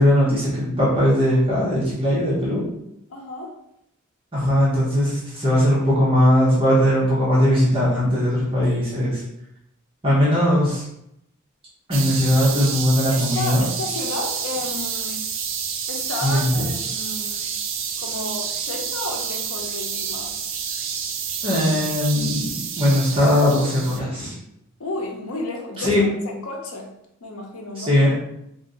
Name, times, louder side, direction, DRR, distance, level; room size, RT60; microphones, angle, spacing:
voice 1, 0.0-2.6 4.3-9.2 10.0-10.9 11.9-13.6 16.2-16.5 21.4-24.3 25.8-26.0 27.8-28.1, equal, 25° right, -9 dB, 1.0 m, -19 dB
voice 2, 3.1-3.6 13.1-15.3 15.9-17.5 18.0-20.4 24.8-26.9 27.2-27.9, left 2 dB, 80° left, 1 dB, 0.7 m, -32 dB
sound 1, 11.9-24.0, right 7 dB, 65° right, 0.4 m, -29 dB
2.7 x 2.7 x 3.8 m, 0.80 s
head